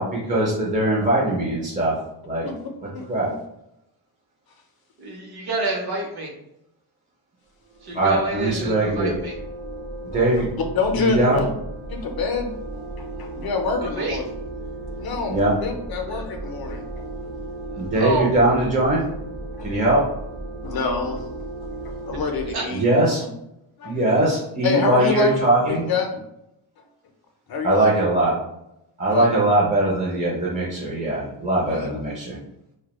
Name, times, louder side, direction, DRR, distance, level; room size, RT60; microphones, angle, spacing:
voice 1, 0.0-1.9 2.2-2.5 3.1-3.3 7.9-9.2 10.1-10.5 10.9-11.4 15.3-15.5 17.8-19.0 19.6-20.0 22.7-23.2 23.8-25.9 27.6-28.3 29.0-32.4, right 1 dB, 20° right, -5 dB, 0.4 m, -21 dB
voice 2, 2.9-3.4 10.1-10.5 10.8-11.5 11.9-14.2 15.0-17.1 19.6-20.0 20.6-21.3 21.8-22.8 23.8-24.2 24.6-25.3 25.7-26.2 26.8-26.9 27.5-27.9 29.1-29.3 31.7-31.9, left 4 dB, 55° left, 4 dB, 0.5 m, -27 dB
voice 3, 5.0-6.3 7.8-9.3 13.8-14.2 16.1-16.2 17.7-18.3 22.5-22.6, right 2 dB, 55° right, -1 dB, 0.7 m, -28 dB
sound 1, 7.7-22.6, right 2 dB, 90° right, 0.5 m, -35 dB
2.2 x 2.1 x 2.9 m, 0.83 s
wide cardioid pair, 145°, 45 cm